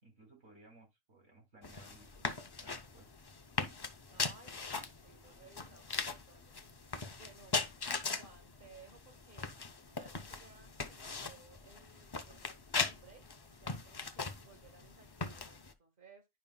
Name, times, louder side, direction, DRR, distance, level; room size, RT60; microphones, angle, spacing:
voice 1, 0.0-2.3 2.6-3.1, right 2 dB, 75° right, 3.0 m, -60 dB
sound 1, 1.6-15.7, left 4 dB, 40° left, 0.3 m, -40 dB
voice 2, 4.1-6.6 7.2-7.6 8.2-9.5 9.9-13.3 13.6-16.3, right 4 dB, 45° right, 1.8 m, -59 dB
10.5 x 5.4 x 2.2 m
omnidirectional pair, 1.3 m